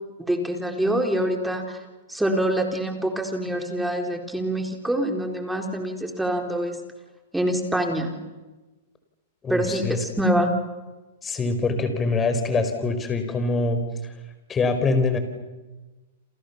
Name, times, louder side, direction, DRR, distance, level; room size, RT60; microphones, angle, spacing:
voice 1, 0.2-1.8 2.1-6.8 7.3-8.2 9.5-10.5, right 1 dB, 5° right, 3 dB, 4.3 m, -25 dB
voice 2, 9.4-10.0 11.2-14.1 14.5-15.2, left 3 dB, 20° left, 8 dB, 5.3 m, -24 dB
30.0 x 27.5 x 7.2 m, 1.2 s
hypercardioid pair, 125°, 0 cm